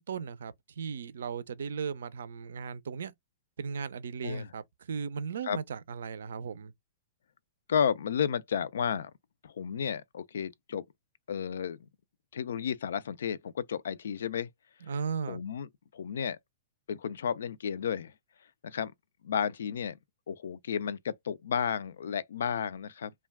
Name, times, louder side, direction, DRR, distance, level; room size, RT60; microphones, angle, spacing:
voice 1, 0.0-3.1 3.6-6.7 14.9-15.4, right 6 dB, 80° right, 0.4 m, -36 dB
voice 2, 7.7-9.1 9.4-10.9 11.3-11.8 12.3-14.5 15.3-16.4 16.9-18.1 18.6-18.9 19.2-20.0 20.3-23.1, left 7 dB, 80° left, 0.4 m, -32 dB
2.3 x 2.2 x 3.4 m
hypercardioid pair, 125°, 0 cm